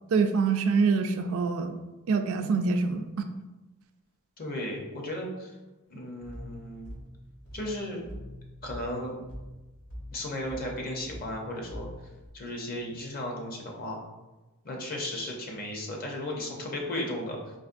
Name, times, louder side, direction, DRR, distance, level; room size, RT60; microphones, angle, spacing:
voice 1, 0.1-1.8 2.1-3.3, right 4 dB, 65° right, 7 dB, 0.3 m, -25 dB
voice 2, 4.4-5.6 5.9-6.9 7.5-8.1 8.6-9.2 10.1-11.9 12.3-14.0 14.6-17.4, left 1 dB, 40° left, 0 dB, 0.7 m, -35 dB
sound 1, 6.2-12.3, equal, 85° left, 1.2 m, -44 dB
4.1 x 2.9 x 2.5 m, 1.1 s
head